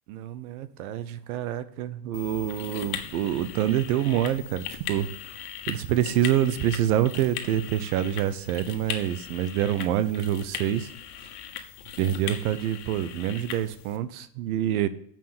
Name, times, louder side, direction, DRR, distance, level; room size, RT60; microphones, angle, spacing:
voice 1, 0.1-5.1 5.7-10.9 12.0-14.9, right 11 dB, 75° right, 14 dB, 0.9 m, -26 dB
sound 1, 2.1-14.0, left 9 dB, 85° left, 1.4 m, -39 dB
7.4 x 5.7 x 7.2 m, 0.62 s
supercardioid pair, 120°, 44 cm